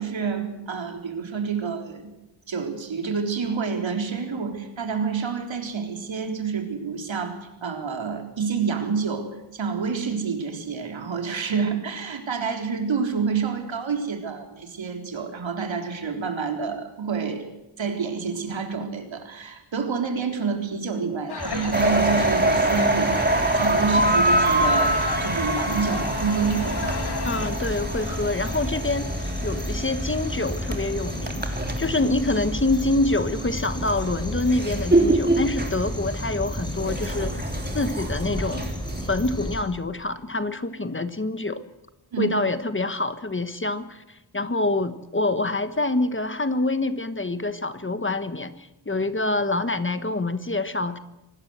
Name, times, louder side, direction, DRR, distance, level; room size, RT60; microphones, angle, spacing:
voice 1, 0.0-2.1 2.5-17.5 17.8-27.0 42.1-42.3, right 5 dB, 80° right, 4 dB, 3.8 m, -28 dB
sound 1, 21.3-27.5, left 5 dB, 55° left, 2.0 m, -35 dB
sound 2, 21.4-39.6, left 1 dB, 10° left, 5.2 m, -32 dB
sound 3, 21.7-32.8 33.2-39.0, right 2 dB, 20° right, 3.4 m, -25 dB
voice 2, 27.2-31.5 31.8-37.4 37.7-38.7 39.1-41.6 42.2-51.0, left 2 dB, 25° left, 11 dB, 1.3 m, -26 dB
25.5 x 19.0 x 8.0 m, 0.98 s
wide cardioid pair, 130°, 46 cm